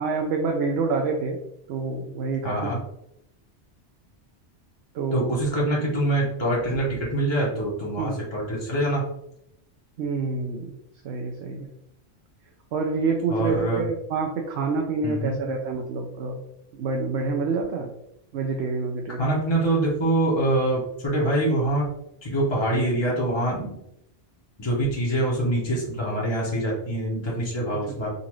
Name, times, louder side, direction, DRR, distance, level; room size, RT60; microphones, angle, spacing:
voice 1, 0.0-1.4 1.7-2.7 4.9-5.4 8.0-8.1 10.0-10.7 11.0-11.7 12.7-16.4 16.7-17.9 18.3-19.3, right 4 dB, 65° right, 2 dB, 0.8 m, -27 dB
voice 2, 2.4-2.8 5.1-9.0 13.3-13.8 15.0-15.4 19.2-21.9 22.2-23.8 24.6-28.1, right 1 dB, 25° left, -5 dB, 0.7 m, -25 dB
3.9 x 2.5 x 3.0 m, 0.78 s
omnidirectional pair, 1.3 m